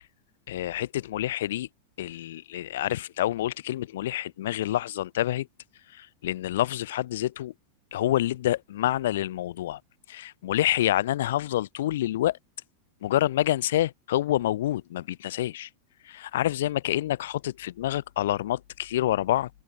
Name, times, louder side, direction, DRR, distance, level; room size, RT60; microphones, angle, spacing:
voice 1, 0.5-1.7 2.0-5.5 5.9-7.5 7.9-9.8 10.1-12.4 13.0-15.7 16.0-19.5, left 13 dB, 55° left, 0.4 m, -27 dB
open air
figure-of-eight pair, 90°, 0 cm